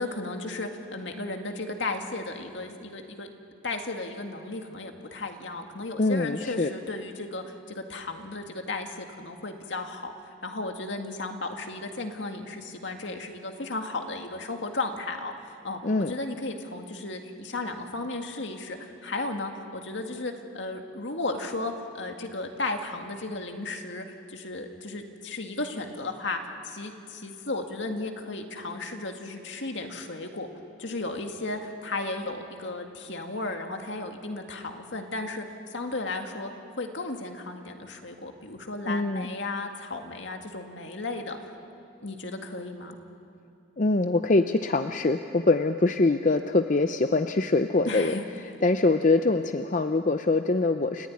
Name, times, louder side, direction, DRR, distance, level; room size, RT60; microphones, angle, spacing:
voice 1, 0.0-3.3 3.6-10.1 10.4-15.3 15.6-15.8 16.1-30.5 30.8-35.4 35.7-36.5 36.8-41.4 42.0-43.0 47.9-48.3, left 2 dB, 70° left, 4 dB, 2.1 m, -34 dB
voice 2, 6.0-6.7 15.8-16.1 38.9-39.3 43.8-48.2 48.6-51.1, left 3 dB, 40° left, 8 dB, 0.6 m, -24 dB
29.5 x 15.5 x 9.7 m, 2.6 s
head